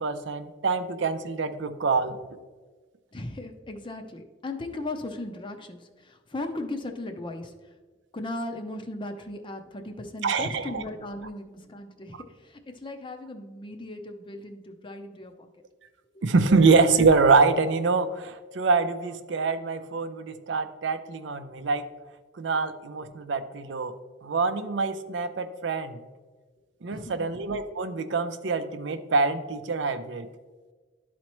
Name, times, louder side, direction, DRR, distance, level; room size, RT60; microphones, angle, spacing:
voice 1, 0.0-2.2 10.2-10.8 16.2-21.9 22.4-23.9 24.2-26.0 26.8-30.3, right 4 dB, 70° right, 10 dB, 0.5 m, -25 dB
voice 2, 3.1-7.7 8.1-15.5 26.9-27.3, left 2 dB, 25° left, 5 dB, 0.6 m, -37 dB
11.5 x 4.3 x 3.0 m, 1.4 s
head